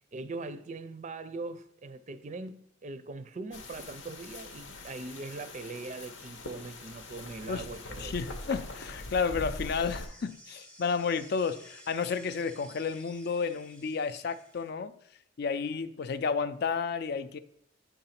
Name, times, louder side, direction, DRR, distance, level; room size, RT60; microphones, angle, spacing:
voice 1, 0.1-8.1, right 3 dB, 40° right, 0.4 m, -41 dB
sound 1, 3.5-10.1, left 2 dB, 80° left, 0.9 m, -42 dB
voice 2, 8.0-14.9 15.4-17.4, left 5 dB, 55° left, 0.4 m, -31 dB
sound 2, 9.5-14.7, equal, 5° left, 0.8 m, -54 dB
9.2 x 3.9 x 5.7 m
head